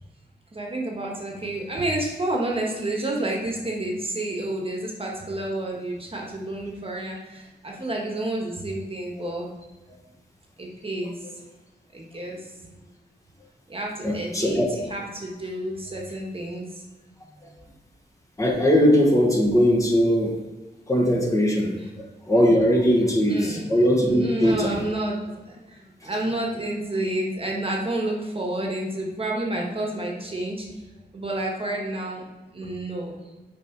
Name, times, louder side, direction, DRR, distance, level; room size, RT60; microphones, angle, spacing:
voice 1, 0.5-9.5 10.6-11.2 11.9-12.8 13.7-16.8 22.9-23.8 24.1-30.8 31.1-32.2 32.5-33.2, right 1 dB, 30° right, -1 dB, 1.3 m, -30 dB
voice 2, 14.0-14.8 17.4-17.5 18.4-20.4 20.9-24.8 26.0-26.1, equal, 20° left, -1 dB, 1.4 m, -20 dB
6.2 x 4.8 x 4.6 m, 1.2 s
wide cardioid pair, 125°, 18 cm